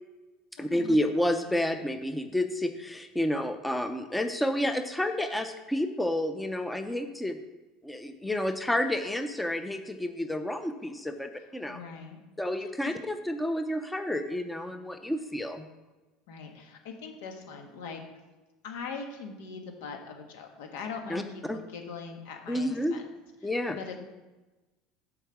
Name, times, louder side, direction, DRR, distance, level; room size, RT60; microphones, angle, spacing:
voice 1, 0.6-7.4 7.8-11.8 12.4-15.7 21.1-21.6 22.5-23.0 23.4-23.8, left 1 dB, 5° left, 7 dB, 0.6 m, -30 dB
voice 2, 11.7-12.2 12.8-12.9 16.3-18.0 18.6-21.2 21.5-23.0 23.7-24.0, left 5 dB, 80° left, 3 dB, 1.6 m, -41 dB
8.3 x 4.7 x 7.0 m, 1.1 s
supercardioid pair, 130°, 0 cm